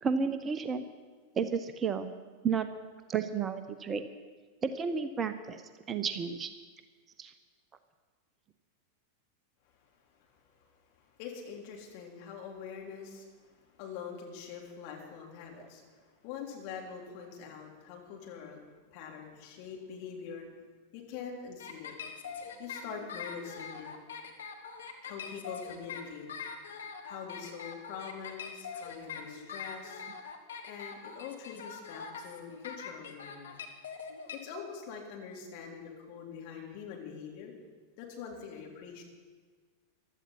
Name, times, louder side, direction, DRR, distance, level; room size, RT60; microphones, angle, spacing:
voice 1, 0.0-0.9 1.3-2.1 2.4-2.7 3.1-4.0 4.6-5.6 5.9-6.5 7.2-7.3 15.6-15.7, right 6 dB, 25° right, 10 dB, 0.8 m, -32 dB
voice 2, 9.8-10.3 10.6-10.7 11.0-20.6 20.9-23.9 25.0-26.3 27.1-30.0 30.6-33.6 34.3-37.5 38.0-39.0, left 6 dB, 45° left, 0 dB, 3.5 m, -44 dB
sound 1, 21.6-34.4, left 6 dB, 70° left, 1.7 m, -43 dB
16.0 x 12.5 x 5.7 m, 1.5 s
figure-of-eight pair, 90°, 0 cm